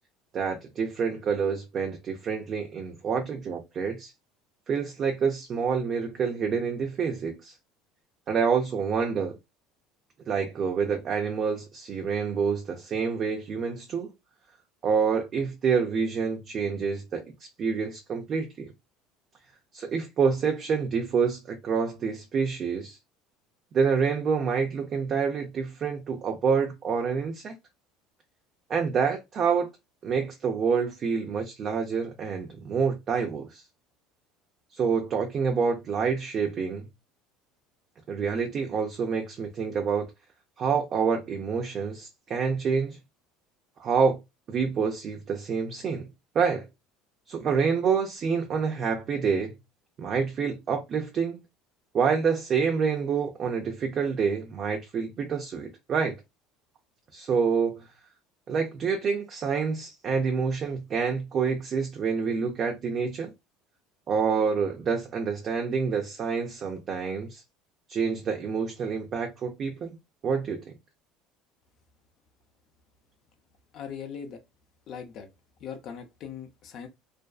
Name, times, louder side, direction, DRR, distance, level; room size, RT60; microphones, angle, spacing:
voice 1, 0.3-4.1 4.7-7.5 8.3-9.4 10.3-14.1 14.8-17.2 17.6-18.7 19.7-23.0 23.7-27.5 28.7-29.7 30.0-33.6 34.7-36.9 38.1-40.1 40.6-43.0 43.8-44.2 44.5-46.0 46.3-46.6 47.3-49.5 50.0-51.4 51.9-56.1 57.1-57.8 58.5-63.3 64.1-67.4 67.9-69.9 70.2-70.6, right 6 dB, 45° right, 0.5 m, -27 dB
voice 2, 73.7-74.4 74.9-75.3 75.6-76.9, left 7 dB, 55° left, 0.5 m, -40 dB
2.5 x 2.2 x 2.3 m
supercardioid pair, 100°, 0 cm